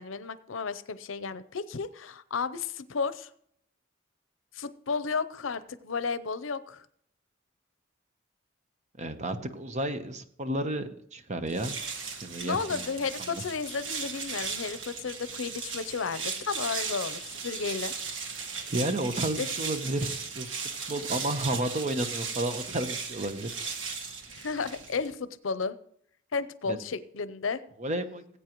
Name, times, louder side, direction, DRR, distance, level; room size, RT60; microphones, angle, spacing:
voice 1, 0.0-3.3 4.5-6.9 12.4-17.9 19.4-19.5 24.3-25.8 26.3-27.6, left 5 dB, 80° left, 14 dB, 0.6 m, -33 dB
voice 2, 9.0-11.8 12.2-12.8 18.7-23.5 26.7-26.8 27.8-28.2, right 1 dB, 35° right, 9 dB, 0.9 m, -32 dB
sound 1, 11.5-25.2, right 5 dB, 70° right, 1.5 m, -37 dB
19.5 x 8.3 x 3.0 m, 0.68 s
head